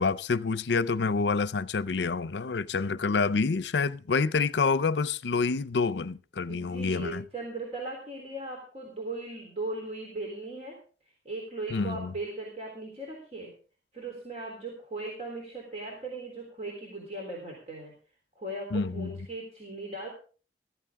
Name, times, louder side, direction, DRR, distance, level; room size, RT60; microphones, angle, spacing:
voice 1, 0.0-7.2 11.7-12.1 18.7-19.1, left 4 dB, 75° left, 0.6 m, -27 dB
voice 2, 6.5-10.8 11.2-13.5 13.9-17.9 18.4-20.1, right 2 dB, 40° right, 3.6 m, -38 dB
15.0 x 14.0 x 3.7 m
head